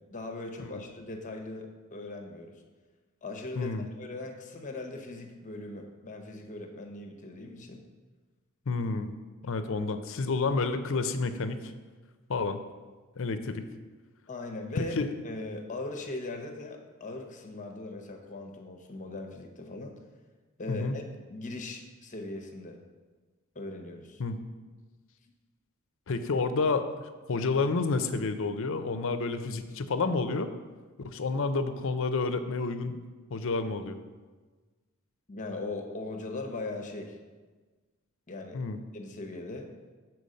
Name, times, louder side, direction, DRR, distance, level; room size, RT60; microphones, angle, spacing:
voice 1, 0.1-2.6 3.2-7.8 14.3-14.9 15.2-19.9 20.6-22.8 23.5-24.2 35.3-37.2 38.3-38.6 38.9-39.7, left 2 dB, 35° left, 3 dB, 0.8 m, -39 dB
voice 2, 3.6-3.9 8.7-9.1 9.4-11.6 12.3-12.6 13.2-13.7 14.8-15.1 20.7-21.0 24.2-24.4 26.1-26.9 27.3-30.5 31.0-32.9 33.3-34.0 38.5-38.8, left 3 dB, 60° left, 9 dB, 0.6 m, -29 dB
6.9 x 4.5 x 6.4 m, 1.3 s
head